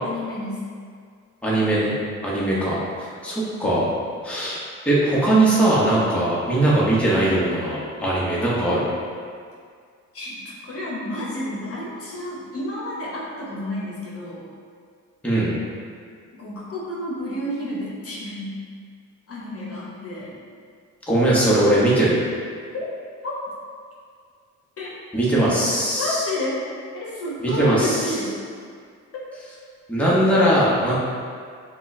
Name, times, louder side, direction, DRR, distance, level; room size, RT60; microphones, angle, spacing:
voice 1, 0.0-0.6 2.3-2.6 6.1-6.2 10.1-14.4 16.3-18.6 19.3-20.3 22.7-22.8 23.2-23.3 24.8-24.9 26.0-26.7 26.9-28.4 29.1-29.2, left 1 dB, 50° left, -5 dB, 1.0 m, -30 dB
voice 2, 1.4-1.9 2.2-3.9 4.2-4.6 4.8-8.9 15.2-15.5 21.1-22.2 25.1-26.2 27.4-28.0 29.9-30.9, right 1 dB, 5° left, -8 dB, 1.2 m, -20 dB
5.9 x 2.4 x 3.2 m, 2.1 s
cardioid pair, 90°, 30 cm